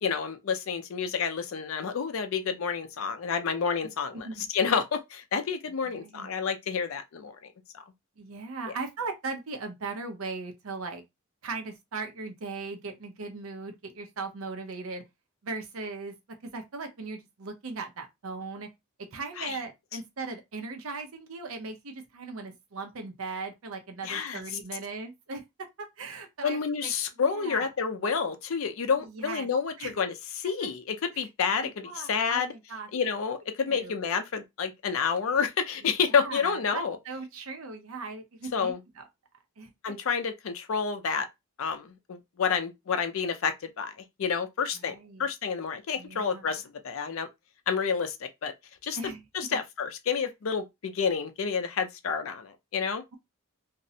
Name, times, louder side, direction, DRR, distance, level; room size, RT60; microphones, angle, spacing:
voice 1, 0.0-7.4 7.7-7.8 8.7-8.8 19.4-19.6 24.0-24.4 26.4-32.5 32.9-37.0 38.5-38.8 39.8-41.3 41.6-43.9 44.2-47.3 47.7-48.5 48.8-49.0 49.3-53.0, left 6 dB, 75° left, 0.5 m, -29 dB
voice 2, 4.1-4.5 5.8-6.3 8.2-11.0 11.4-15.0 15.4-16.1 16.4-18.7 19.1-26.9 27.3-27.7 29.1-29.5 29.8-29.9 31.1-31.2 31.6-32.9 33.7-33.9 36.2-39.0 39.6-39.7 44.7-45.3 46.0-46.6 49.0-49.2 49.5-49.6, right 4 dB, 80° right, 0.6 m, -38 dB
2.5 x 2.0 x 2.7 m
head